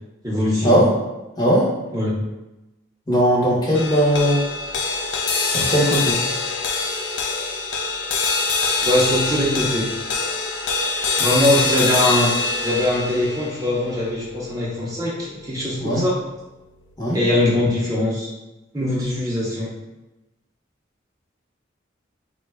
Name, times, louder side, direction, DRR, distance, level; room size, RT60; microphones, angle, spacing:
voice 1, 0.2-0.8 1.9-2.1 8.8-9.9 11.2-12.3 12.6-16.2 17.1-18.3 18.7-19.7, left 1 dB, 15° right, -5 dB, 0.4 m, -21 dB
voice 2, 1.4-1.7 3.1-4.4 5.4-6.2 15.8-16.0 17.0-17.2, equal, 20° left, -5 dB, 0.7 m, -18 dB
sound 1, 3.7-16.2, left 4 dB, 65° left, 0.4 m, -25 dB
3.6 x 2.1 x 3.3 m, 1.0 s
head